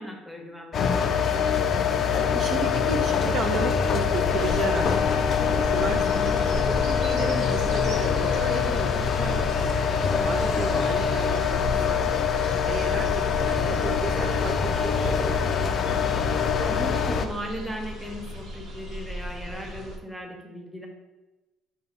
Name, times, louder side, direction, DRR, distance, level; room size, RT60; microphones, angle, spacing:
voice 1, 0.0-1.7 6.0-6.4 10.0-10.3 16.6-20.9, equal, ahead, 1 dB, 0.9 m, -37 dB
sound 1, 0.7-17.3, left 6 dB, 50° left, 0.3 m, -24 dB
voice 2, 2.3-9.7 10.2-12.2 12.7-15.8, right 3 dB, 55° right, 3 dB, 0.5 m, -34 dB
sound 2, 4.3-20.0, equal, 80° right, 0.9 m, -38 dB
5.4 x 2.2 x 4.4 m, 1.1 s
cardioid pair, 90°, 0 cm